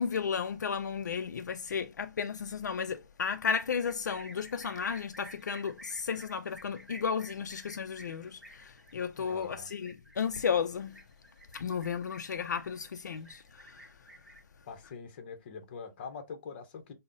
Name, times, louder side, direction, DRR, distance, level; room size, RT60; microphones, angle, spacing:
voice 1, 0.0-11.0 11.5-14.0, left 6 dB, 70° left, 0.4 m, -34 dB
sound 1, 3.5-14.4, right 1 dB, ahead, 0.4 m, -52 dB
voice 2, 9.2-9.7 14.7-16.9, left 5 dB, 35° left, 0.7 m, -44 dB
5.2 x 2.0 x 2.5 m
hypercardioid pair, 160°, 10 cm